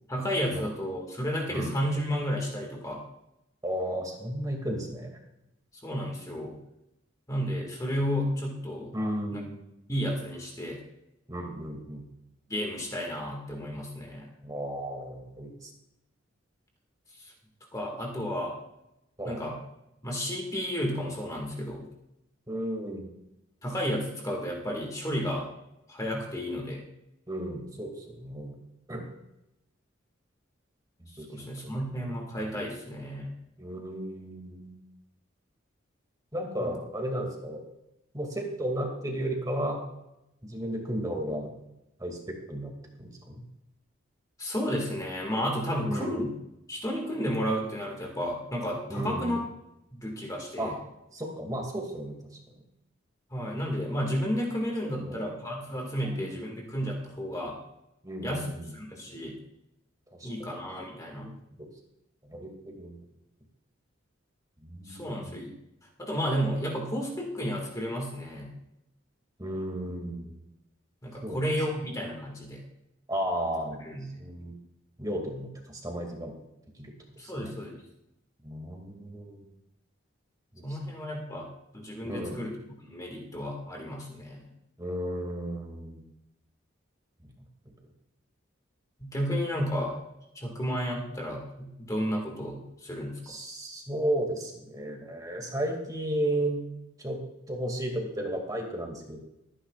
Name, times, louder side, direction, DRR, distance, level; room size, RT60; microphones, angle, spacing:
voice 1, 0.1-3.0 5.8-6.6 7.3-8.9 9.3-9.4 9.9-10.8 12.5-14.3 17.2-17.3 17.7-18.6 19.2-19.6 20.0-21.9 23.6-25.5 25.9-26.8 31.3-33.3 36.6-36.7 44.4-46.3 46.7-49.4 49.9-50.7 53.3-57.6 58.2-58.5 58.7-59.4 60.2-61.3 64.9-65.5 66.0-68.5 71.0-72.6 73.8-74.2 77.2-77.8 80.6-81.5 81.7-82.5 82.8-84.5 89.0-89.9 90.4-93.3, equal, 15° left, 0 dB, 1.8 m, -32 dB
voice 2, 3.6-5.1 8.9-9.6 11.3-12.0 14.4-15.7 19.2-19.5 22.5-23.1 27.3-28.6 28.9-29.1 31.0-31.3 31.6-31.9 33.6-34.8 36.3-37.6 38.1-39.8 40.4-41.5 42.0-42.7 43.0-43.4 45.8-46.3 48.9-49.4 50.6-50.7 51.1-52.2 55.0-55.3 56.0-56.4 58.0-58.7 60.1-60.5 61.1-61.7 62.3-62.9 64.6-65.4 69.4-70.4 71.2-71.5 73.1-73.8 74.2-74.5 75.0-76.3 76.8-76.9 77.2-77.5 78.4-79.5 80.5-80.8 82.0-82.4 84.8-86.0 87.2-87.3 87.7-87.8 93.2-96.6 97.0-97.2 97.5-99.2, right 1 dB, 20° right, 2 dB, 2.2 m, -34 dB
23.0 x 10.0 x 2.4 m, 0.88 s
head